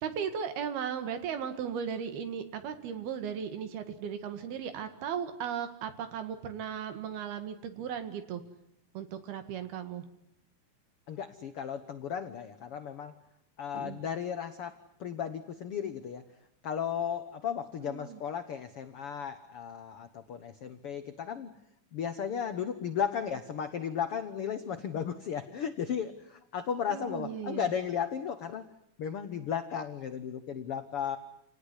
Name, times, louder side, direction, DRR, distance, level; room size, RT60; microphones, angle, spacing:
voice 1, 0.0-8.4 8.9-10.0 13.7-14.0 17.8-18.2 26.9-27.7, right 8 dB, 85° right, 9 dB, 3.9 m, -36 dB
voice 2, 11.1-13.1 13.6-16.2 16.6-21.5 21.9-28.7 29.0-31.2, left 8 dB, 85° left, 10 dB, 1.2 m, -35 dB
28.5 x 18.5 x 9.9 m, 0.76 s
omnidirectional pair, 4.3 m